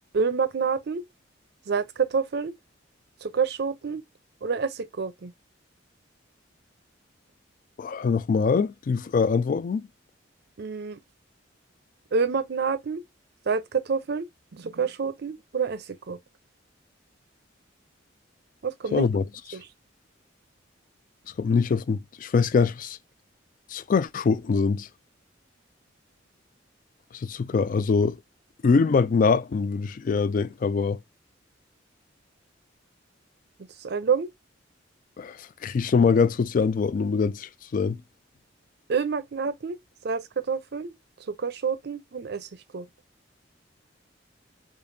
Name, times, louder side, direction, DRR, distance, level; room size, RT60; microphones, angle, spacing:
voice 1, 0.1-1.0 1.7-2.5 3.2-4.0 4.4-5.3 10.6-11.0 12.1-13.0 13.5-16.2 18.6-19.1 19.5-19.7 27.5-27.6 33.6-34.3 38.9-39.8 40.0-40.9 41.3-42.9, right 5 dB, 55° right, 0.5 m, -28 dB
voice 2, 7.8-9.8 18.9-19.2 21.4-23.0 23.7-24.9 27.1-28.2 28.6-31.0 35.2-38.0, left 5 dB, 45° left, 0.3 m, -23 dB
5.1 x 2.4 x 2.6 m
head